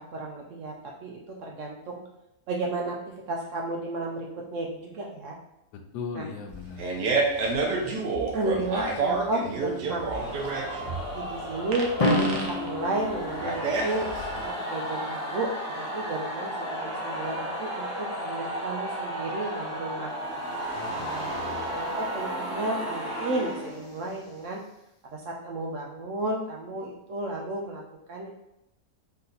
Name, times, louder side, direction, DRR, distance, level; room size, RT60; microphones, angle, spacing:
voice 1, 0.0-2.0 2.5-5.4 6.1-6.3 7.8-7.9 8.3-10.1 10.5-10.6 11.1-14.1 14.3-20.1 21.0-21.3 21.7-24.6 25.0-27.8 28.1-28.3, right 2 dB, 65° right, -1 dB, 0.8 m, -33 dB
voice 2, 5.7-6.8 20.7-21.7, left 5 dB, 90° left, 4 dB, 1.3 m, -39 dB
Fart, 6.5-14.4, right 3 dB, 80° right, 1.3 m, -29 dB
sound 1, 10.1-24.3, equal, 45° left, 1.4 m, -34 dB
Drum, 12.0-14.0, left 1 dB, 75° left, 0.3 m, -28 dB
4.1 x 2.7 x 3.9 m, 0.84 s
omnidirectional pair, 1.7 m